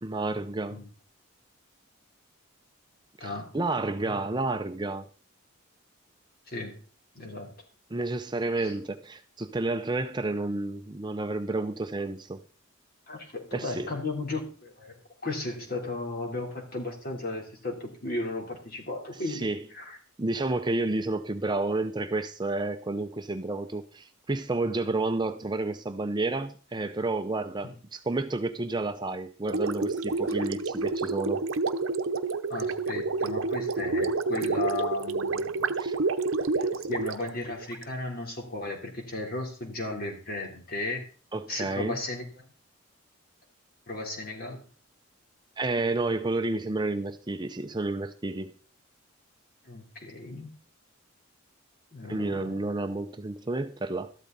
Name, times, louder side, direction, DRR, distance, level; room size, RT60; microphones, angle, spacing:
voice 1, 0.0-0.8 3.2-5.1 7.9-12.4 13.5-13.9 19.3-19.6 20.2-31.4 35.8-36.0 41.3-42.0 45.6-48.5 52.1-54.1, right 2 dB, 20° right, 0.5 m, -30 dB
voice 2, 3.2-3.5 6.5-6.8 7.2-7.5 8.6-8.7 13.1-14.9 15.2-19.5 19.7-20.0 27.6-27.8 32.5-35.7 36.6-41.0 41.5-42.5 43.9-44.6 49.6-50.5 51.9-52.7, left 2 dB, 45° left, 3.5 m, -35 dB
Gurgling, 29.5-37.8, right 3 dB, 70° right, 0.8 m, -29 dB
13.5 x 12.0 x 4.0 m
head